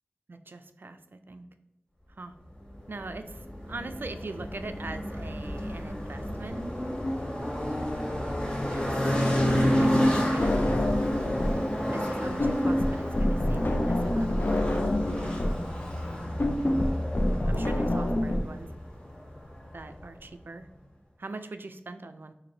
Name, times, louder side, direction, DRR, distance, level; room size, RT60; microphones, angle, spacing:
voice 1, 0.3-1.5 2.1-2.3 2.9-6.6 8.7-9.2 9.8-10.8 11.9-14.8 17.1-18.7 19.7-20.7 21.2-22.3, right 3 dB, 65° right, 9 dB, 0.3 m, -42 dB
sound 1, 2.7-20.1, equal, 25° left, 0.8 m, -30 dB
sound 2, 9.2-16.2, equal, 15° right, 1.1 m, -48 dB
sound 3, 10.4-11.7 11.9-18.4, left 1 dB, 50° left, 0.4 m, -27 dB
3.1 x 2.6 x 3.8 m, 0.90 s
wide cardioid pair, 45°, 4 cm